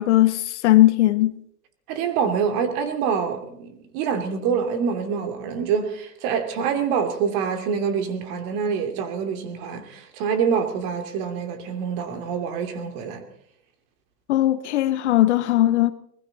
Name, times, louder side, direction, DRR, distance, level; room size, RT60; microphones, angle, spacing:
voice 1, 0.0-1.3 14.3-15.9, left 14 dB, 45° left, 0.8 m, -18 dB
voice 2, 1.9-13.2, right 6 dB, 40° right, 2.7 m, -26 dB
20.5 x 15.0 x 4.0 m
hypercardioid pair, 125°, 48 cm